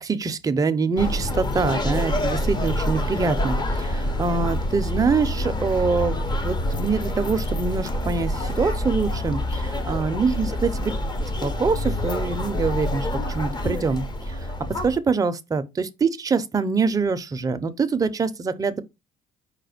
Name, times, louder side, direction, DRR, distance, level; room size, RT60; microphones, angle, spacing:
voice 1, 0.0-10.9 11.4-13.1 13.3-14.3 14.6-18.8, right 4 dB, 20° right, 0.5 m, -24 dB
sound 1, 1.0-15.0, left 1 dB, 25° left, 0.7 m, -26 dB
5.0 x 2.1 x 4.8 m
cardioid pair, 110°, 17 cm